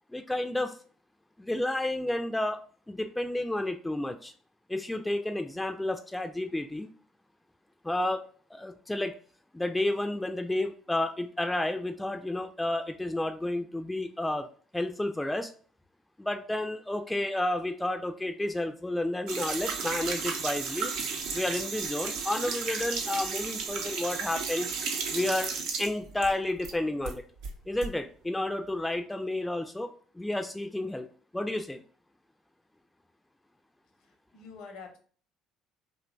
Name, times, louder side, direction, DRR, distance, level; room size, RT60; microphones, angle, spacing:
voice 1, 0.1-0.7 1.4-4.3 4.7-6.9 7.8-8.2 8.5-9.2 9.5-14.5 14.7-15.5 16.2-20.9 21.3-24.7 25.1-25.5 25.8-27.2 27.7-31.1 31.3-31.8, left 1 dB, 10° left, 6 dB, 0.3 m, -31 dB
sound 1, 19.3-26.7 27.0-27.9, right 5 dB, 70° right, 0.4 m, -34 dB
voice 2, 34.0-35.0, left 5 dB, 70° left, 4 dB, 0.7 m, -47 dB
2.7 x 2.2 x 2.6 m, 0.43 s
hypercardioid pair, 55°, 0 cm